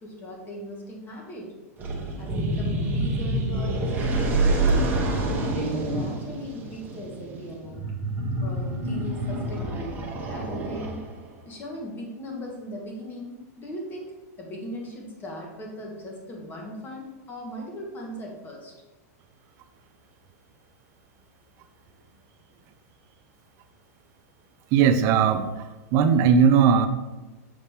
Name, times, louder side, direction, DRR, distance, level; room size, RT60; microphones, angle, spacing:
voice 1, 0.0-1.5 2.2-4.9 5.5-7.8 8.4-11.0 11.4-18.7, equal, 25° left, -1 dB, 1.5 m, -39 dB
sound 1, 1.8-11.3, right 2 dB, 20° right, 1.0 m, -27 dB
voice 2, 24.7-25.6 25.9-26.9, right 7 dB, 40° right, 10 dB, 0.5 m, -18 dB
7.2 x 4.0 x 3.5 m, 1.1 s
supercardioid pair, 140°, 9 cm